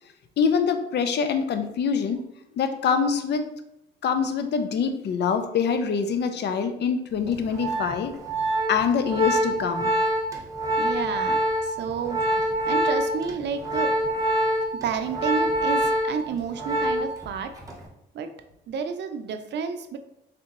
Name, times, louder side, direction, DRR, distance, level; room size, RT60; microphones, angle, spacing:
voice 1, 0.4-2.2 2.6-3.5 4.0-8.1 8.7-9.9, left 6 dB, 60° left, 8 dB, 0.5 m, -24 dB
Organ, 7.3-17.3 17.6-17.9, right 1 dB, 15° right, 0.9 m, -26 dB
voice 2, 10.8-12.2 12.7-13.9 14.8-17.5 18.1-18.3 18.7-20.0, right 6 dB, 60° right, 7 dB, 0.5 m, -30 dB
3.6 x 3.4 x 3.0 m, 0.83 s
cardioid pair, 90°, 20 cm